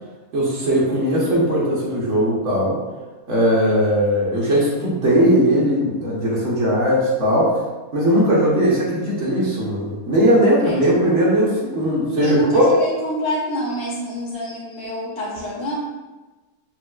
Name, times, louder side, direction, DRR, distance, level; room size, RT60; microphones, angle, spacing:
voice 1, 0.3-2.8 3.3-7.5 7.9-12.6, equal, 65° right, -6 dB, 1.3 m, -18 dB
voice 2, 10.6-10.9 12.2-15.7, equal, 75° left, -5 dB, 1.1 m, -26 dB
5.7 x 2.5 x 2.3 m, 1.2 s
omnidirectional pair, 1.3 m